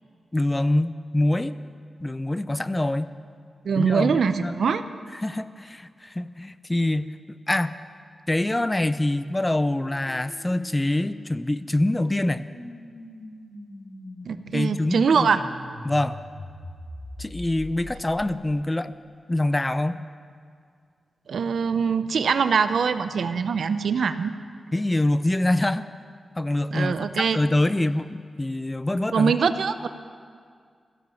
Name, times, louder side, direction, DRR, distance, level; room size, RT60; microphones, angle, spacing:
voice 1, 0.3-1.5 2.0-3.1 3.8-4.6 5.1-7.1 7.5-7.8 8.3-12.4 14.5-15.4 15.8-16.2 17.2-18.9 19.3-20.0 24.7-25.9 26.4-29.3, left 1 dB, 20° left, 14 dB, 0.5 m, -25 dB
voice 2, 3.6-4.8 14.3-15.4 21.3-24.3 26.7-27.4 29.1-29.9, right 6 dB, 75° right, 11 dB, 0.6 m, -23 dB
sound 1, 8.4-18.5, left 1 dB, 70° left, 5.0 m, -43 dB
14.5 x 10.5 x 7.1 m, 2.1 s
wide cardioid pair, 90°, 0 cm